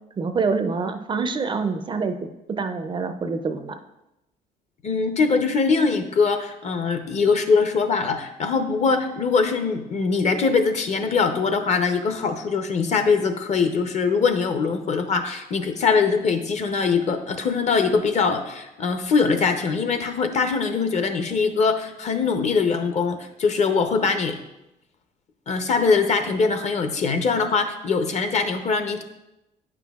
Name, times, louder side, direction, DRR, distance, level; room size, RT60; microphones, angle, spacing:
voice 1, 0.2-2.2 2.5-3.8, right 4 dB, 30° right, 8 dB, 0.4 m, -26 dB
voice 2, 4.8-24.4 25.5-29.0, left 5 dB, 45° left, 8 dB, 0.7 m, -22 dB
8.8 x 6.0 x 2.3 m, 0.92 s
cardioid pair, 110°, 17 cm